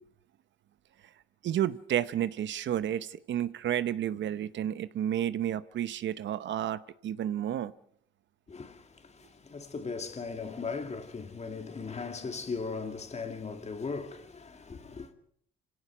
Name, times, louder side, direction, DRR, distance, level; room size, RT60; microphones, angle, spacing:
voice 1, 1.4-7.7, right 11 dB, 65° right, 0.8 m, -31 dB
voice 2, 8.5-15.1, left 4 dB, 35° left, 2.4 m, -38 dB
25.5 x 17.0 x 6.1 m
cardioid pair, 90°, 20 cm